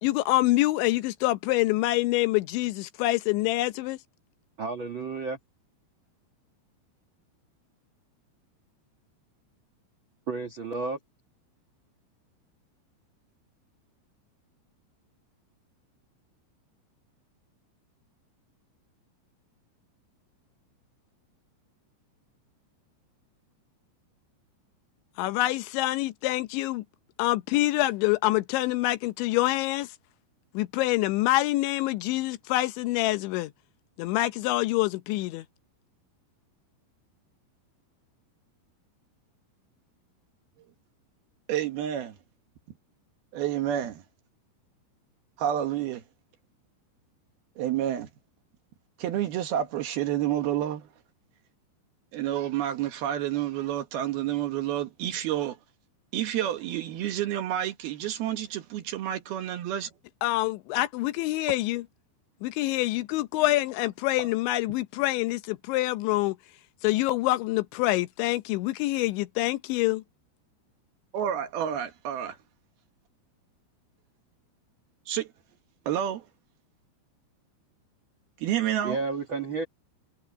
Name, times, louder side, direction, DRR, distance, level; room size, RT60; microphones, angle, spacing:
voice 1, 0.0-4.0 25.2-26.8 27.2-29.9 30.5-33.5 34.0-35.4 60.2-61.9 62.4-66.4 66.8-70.0, left 17 dB, 80° left, 3.2 m, -26 dB
voice 2, 4.6-5.4 10.3-11.0 78.8-79.6, right 4 dB, 90° right, 1.0 m, -31 dB
voice 3, 41.5-42.2 43.3-44.0 45.4-46.0 47.6-48.1 49.0-50.9 52.1-55.6 56.1-59.9 71.1-72.4 75.1-75.3 75.9-76.2 78.4-79.0, right 11 dB, 65° right, 3.0 m, -29 dB
omnidirectional pair, 5.3 m